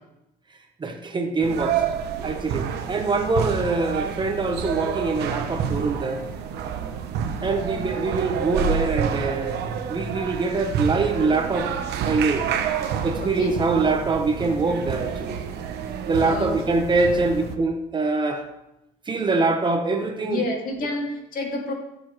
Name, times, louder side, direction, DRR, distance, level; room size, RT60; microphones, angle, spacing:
voice 1, 0.8-1.8 2.2-6.2 7.4-9.6 9.9-11.7 12.0-12.5 13.0-15.4 16.1-18.4 19.1-20.4, right 3 dB, 30° right, 5 dB, 1.1 m, -24 dB
sound 1, 1.4-17.6, right 7 dB, 80° right, 1.0 m, -28 dB
voice 2, 13.2-13.7 16.2-17.0 20.3-21.7, left 2 dB, 55° left, 1 dB, 2.3 m, -30 dB
15.0 x 7.1 x 3.2 m, 0.88 s
cardioid pair, 110°, 17 cm